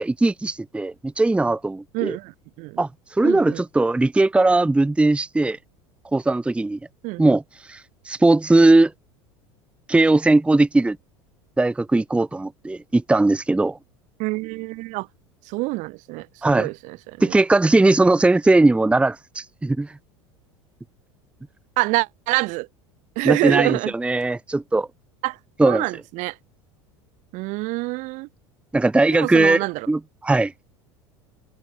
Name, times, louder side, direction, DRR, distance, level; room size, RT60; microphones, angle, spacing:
voice 1, 0.0-2.2 2.8-5.6 6.1-6.8 7.2-7.4 7.7-7.8 8.1-8.9 9.9-11.0 11.6-13.8 16.4-16.7 17.2-19.9 23.2-24.9 25.6-25.8 28.7-30.5, right 2 dB, 5° right, 0.8 m, -19 dB
voice 2, 1.9-2.8 3.2-3.6 7.0-7.2 14.2-15.1 15.5-17.3 21.8-22.7 23.1-23.9 25.2-25.4 25.7-26.4 27.3-28.3 29.1-29.9, right 23 dB, 55° right, 1.5 m, -26 dB
open air
hypercardioid pair, 80°, 15 cm